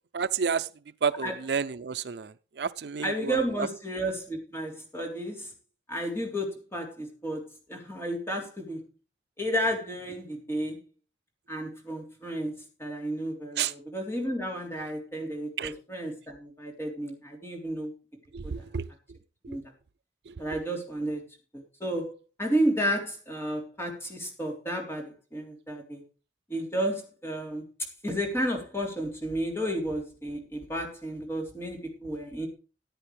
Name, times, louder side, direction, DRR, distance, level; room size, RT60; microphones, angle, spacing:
voice 1, 0.1-0.7 1.0-3.3 13.6-13.7 15.6-15.7 18.3-18.9 20.3-20.4, right 6 dB, 65° right, 14 dB, 0.5 m, -30 dB
voice 2, 3.0-5.5 5.9-7.4 7.7-8.8 9.4-10.8 11.5-17.9 18.4-18.6 19.5-19.6 20.4-21.2 21.5-26.0 26.5-27.6 28.0-32.5, right 1 dB, 15° left, 1 dB, 3.4 m, -32 dB
14.5 x 9.7 x 3.3 m, 0.32 s
head